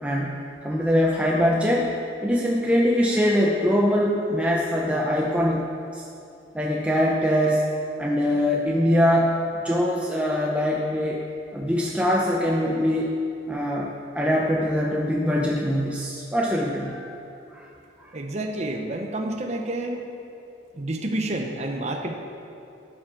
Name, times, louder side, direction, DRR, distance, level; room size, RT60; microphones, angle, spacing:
voice 1, 0.0-5.7 5.9-6.0 6.5-7.6 8.0-11.2 11.5-13.1 13.5-17.1 17.5-17.7 18.0-18.1, equal, 5° right, -3 dB, 0.8 m, -23 dB
voice 2, 18.1-20.0 20.7-22.1, right 1 dB, 40° right, 2 dB, 1.0 m, -29 dB
13.5 x 7.7 x 6.0 m, 2.7 s
head